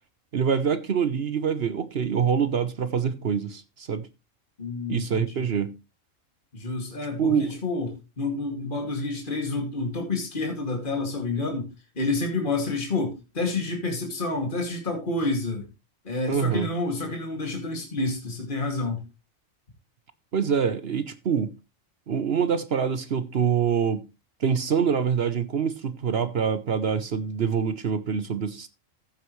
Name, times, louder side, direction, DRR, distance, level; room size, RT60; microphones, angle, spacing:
voice 1, 0.3-4.1 4.9-5.7 7.2-7.5 16.3-16.7 20.3-21.5 22.1-24.0 24.4-28.7, right 7 dB, 55° right, 1.0 m, -25 dB
voice 2, 4.6-5.5 6.5-11.7 12.0-15.7 16.0-19.0, left 3 dB, 40° left, 2.6 m, -29 dB
14.5 x 8.0 x 3.1 m
omnidirectional pair, 1.4 m